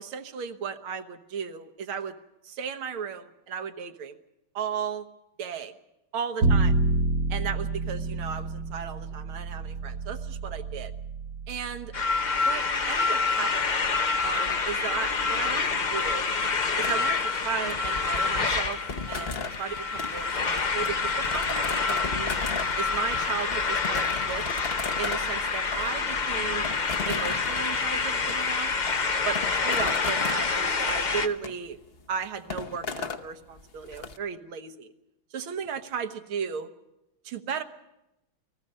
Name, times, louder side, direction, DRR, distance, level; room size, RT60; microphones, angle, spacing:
voice 1, 0.0-2.1 2.4-4.2 4.6-5.1 5.4-5.7 6.1-6.8 7.3-10.9 11.5-11.9 12.4-13.8 14.2-16.3 16.8-18.8 19.1-22.4 22.8-24.4 25.0-26.6 27.1-28.8 29.3-31.8 32.1-34.9 35.3-36.7 37.2-37.6, right 7 dB, 85° right, 8 dB, 2.0 m, -35 dB
Bowed string instrument, 6.4-12.6, right 3 dB, 60° right, 1.8 m, -28 dB
sound 1, 11.9-31.3, left 4 dB, 80° left, 0.4 m, -27 dB
sound 2, 16.8-34.2, left 4 dB, 45° left, 0.8 m, -38 dB
29.5 x 20.0 x 5.5 m, 0.90 s
omnidirectional pair, 2.2 m